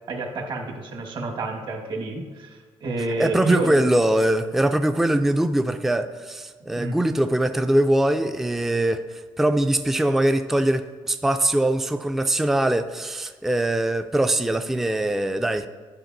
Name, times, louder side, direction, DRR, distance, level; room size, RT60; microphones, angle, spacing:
voice 1, 0.1-3.9 6.7-7.0, right 2 dB, 55° right, 2 dB, 1.3 m, -29 dB
voice 2, 3.2-15.7, right 1 dB, 5° right, 8 dB, 0.3 m, -22 dB
12.5 x 4.9 x 2.6 m, 1.4 s
cardioid pair, 110°, 10 cm